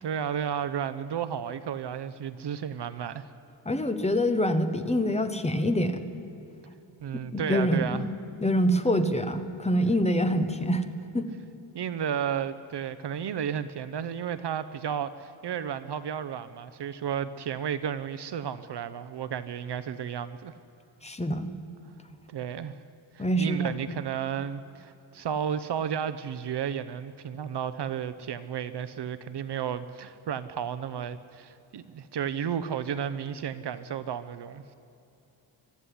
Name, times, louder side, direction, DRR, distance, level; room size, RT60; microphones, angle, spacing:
voice 1, 0.0-3.3 7.0-8.1 11.7-20.5 22.3-22.8 23.1-34.6, right 8 dB, 60° right, 13 dB, 0.7 m, -33 dB
voice 2, 3.7-6.0 7.3-8.0 8.4-10.8 11.1-11.2 21.0-21.5 23.2-23.7, equal, 15° left, 8 dB, 1.1 m, -25 dB
23.5 x 13.0 x 9.9 m, 2.8 s
wide cardioid pair, 170°, 47 cm